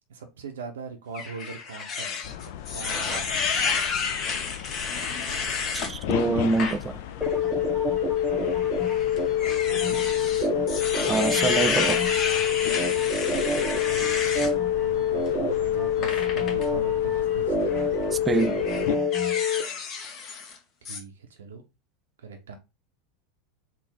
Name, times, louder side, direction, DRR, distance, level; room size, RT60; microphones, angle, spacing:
voice 1, 0.1-3.4 9.7-10.0 13.9-17.9 20.2-20.3 20.8-21.6 22.2-22.6, right 5 dB, 75° right, 0.6 m, -41 dB
sound 1, 1.1-5.9 6.4-6.8 7.2-7.3 8.4-14.5 16.0-16.7 17.6-17.9 18.3-20.6 20.9-21.0, left 5 dB, 40° left, 0.8 m, -30 dB
sound 2, 2.2-19.0, left 10 dB, 60° left, 0.3 m, -37 dB
voice 2, 5.7-7.0 11.1-12.0 18.2-18.6, right 4 dB, 20° right, 0.3 m, -25 dB
sound 3, 7.2-19.6, left 6 dB, 5° left, 0.8 m, -25 dB
3.7 x 2.0 x 4.3 m
figure-of-eight pair, 85°, 0 cm